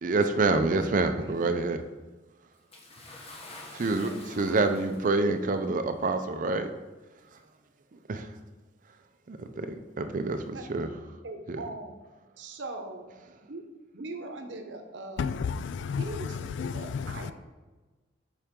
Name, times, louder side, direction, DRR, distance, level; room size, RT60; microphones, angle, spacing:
voice 1, 0.0-1.8 3.7-6.7 8.1-8.3 9.3-10.9 11.5-11.6, right 3 dB, 45° right, 0.5 m, -27 dB
voice 2, 1.2-1.7 3.3-3.4 4.1-4.6 10.5-10.6 11.2-12.0 12.4-13.1 13.5-13.6 13.9-15.3 16.0-17.3, right 2 dB, 75° right, 0.8 m, -41 dB
Bathtub (filling or washing) / Splash splatter, 2.7-5.3 6.2-6.3 7.3-7.4, left 2 dB, 35° left, 1.1 m, -47 dB
voice 3, 15.2-17.3, left 6 dB, 75° left, 0.3 m, -32 dB
7.1 x 4.9 x 3.7 m
head